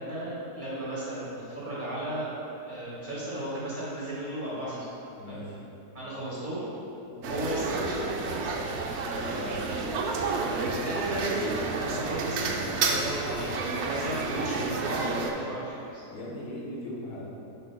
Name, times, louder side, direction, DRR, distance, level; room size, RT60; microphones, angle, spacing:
voice 1, 0.0-2.3 2.7-4.9 5.2-5.4 5.9-6.7 7.0-8.5 10.4-16.0, right 1 dB, 30° right, -8 dB, 1.3 m, -35 dB
voice 2, 5.2-5.6 9.3-9.6 16.1-17.3, left 1 dB, 85° left, -5 dB, 1.7 m, -38 dB
sound 1, 7.2-15.3, right 4 dB, 90° right, 0.6 m, -30 dB
7.4 x 5.6 x 2.2 m, 2.9 s
omnidirectional pair, 1.8 m